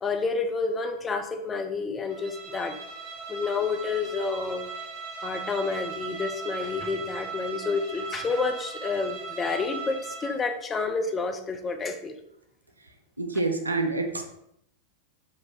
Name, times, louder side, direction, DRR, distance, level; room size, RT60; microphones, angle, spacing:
voice 1, 0.0-2.8 3.3-4.7 5.2-12.1, left 4 dB, 20° left, 6 dB, 0.5 m, -29 dB
Bowed string instrument, 2.1-10.5, right 5 dB, 30° right, 1.0 m, -38 dB
voice 2, 13.2-14.2, right 2 dB, 80° right, 5 dB, 0.5 m, -27 dB
5.7 x 2.6 x 2.9 m, 0.74 s
figure-of-eight pair, 90°, 0 cm